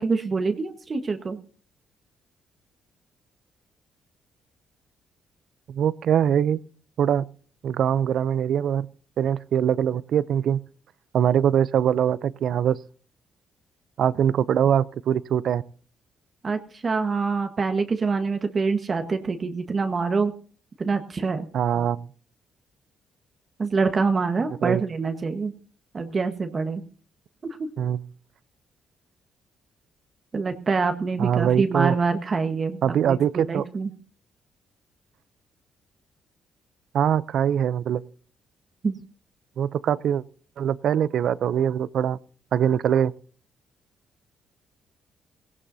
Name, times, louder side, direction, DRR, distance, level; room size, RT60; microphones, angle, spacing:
voice 1, 0.0-1.4 16.4-20.3 20.8-21.5 23.6-25.5 25.9-26.8 27.4-27.7 30.3-33.9 38.8-38.9, right 4 dB, 40° right, 7 dB, 1.3 m, -25 dB
voice 2, 5.7-6.6 7.0-7.3 7.6-8.9 9.2-10.6 11.1-12.8 14.0-15.6 21.5-22.1 24.6-24.8 27.8-28.0 31.2-32.0 32.8-33.6 36.9-38.0 39.6-40.2 40.6-42.2 42.5-43.1, right 9 dB, 70° right, 19 dB, 0.5 m, -22 dB
17.5 x 17.5 x 2.7 m, 0.42 s
cardioid pair, 90°, 0 cm